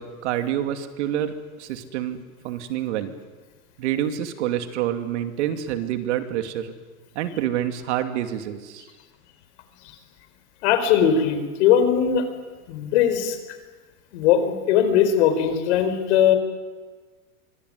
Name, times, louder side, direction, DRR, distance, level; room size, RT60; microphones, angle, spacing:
voice 1, 0.0-3.1 3.8-6.7 7.1-8.9, right 11 dB, 55° right, 7 dB, 2.6 m, -27 dB
voice 2, 10.6-12.3 12.7-13.4 14.1-16.4, left 8 dB, 50° left, 9 dB, 4.4 m, -19 dB
25.0 x 22.5 x 9.7 m, 1.3 s
supercardioid pair, 165°, 42 cm